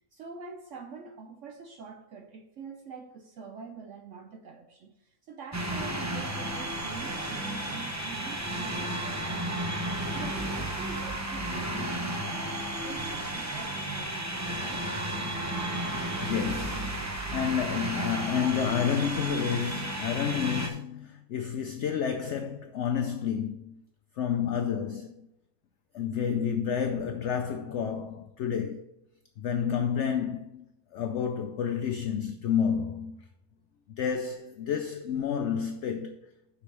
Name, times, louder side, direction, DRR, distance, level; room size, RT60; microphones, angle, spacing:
voice 1, 0.1-14.9, right 5 dB, 65° right, 0.9 m, -45 dB
sound 1, 5.5-20.7, right 1 dB, 25° right, 0.4 m, -33 dB
voice 2, 16.2-23.8 24.2-25.3 25.9-28.8 29.4-30.7 30.9-33.2 34.0-36.2, left 7 dB, 65° left, 0.7 m, -30 dB
9.7 x 6.1 x 3.3 m
omnidirectional pair, 1.6 m